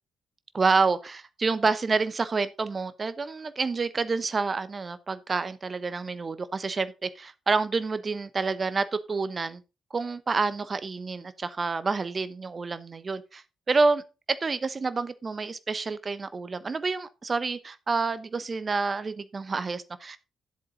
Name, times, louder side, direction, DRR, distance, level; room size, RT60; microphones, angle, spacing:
voice 1, 0.5-9.6 9.9-20.2, right 4 dB, 35° right, 1.0 m, -28 dB
10.5 x 7.8 x 3.8 m
figure-of-eight pair, 40°, 0 cm